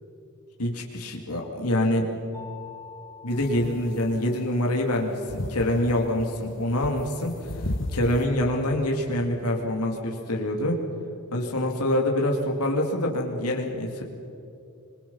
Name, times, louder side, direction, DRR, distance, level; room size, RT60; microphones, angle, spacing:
voice 1, 0.6-2.3 3.2-7.5 7.9-10.8 11.3-14.0, left 1 dB, 85° left, 1 dB, 2.6 m, -25 dB
Mallet percussion, 2.3-4.8, left 6 dB, 15° left, 3.2 m, -46 dB
sound 1, 3.3-8.2, left 1 dB, 60° left, 1.5 m, -34 dB
26.5 x 22.5 x 5.6 m, 2.7 s
head